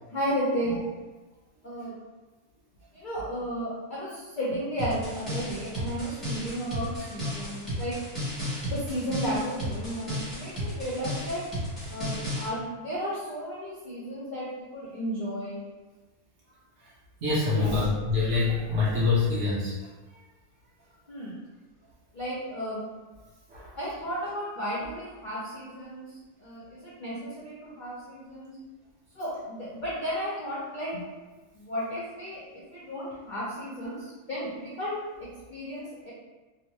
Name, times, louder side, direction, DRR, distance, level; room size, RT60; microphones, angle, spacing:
voice 1, 0.1-0.8 1.6-2.0 2.9-7.9 8.7-11.5 11.9-15.6 17.6-18.1 21.1-21.4 22.1-22.9 23.7-28.6 29.1-31.0 31.5-36.1, equal, 65° left, -7 dB, 0.5 m, -34 dB
sound 1, 4.8-12.5, equal, ahead, 0.8 m, -34 dB
voice 2, 17.2-19.7 23.5-23.7, left 4 dB, 55° right, -7 dB, 0.9 m, -25 dB
2.9 x 2.0 x 3.0 m, 1.2 s
omnidirectional pair, 1.6 m